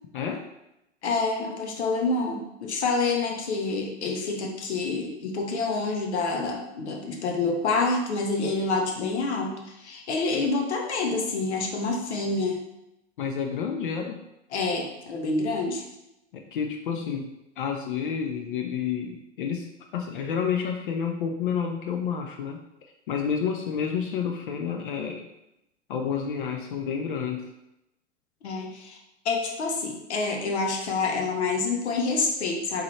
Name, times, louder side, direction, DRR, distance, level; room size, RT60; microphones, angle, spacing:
voice 1, 0.1-0.4 13.2-14.2 16.3-19.7 19.9-22.6 23.1-25.3 25.9-27.5, left 7 dB, 45° left, 3 dB, 0.4 m, -30 dB
voice 2, 1.0-12.6 14.5-15.8 28.4-29.0 29.2-32.8, left 3 dB, 65° left, 1 dB, 0.9 m, -27 dB
3.7 x 3.1 x 3.1 m, 0.87 s
figure-of-eight pair, 95°, 36 cm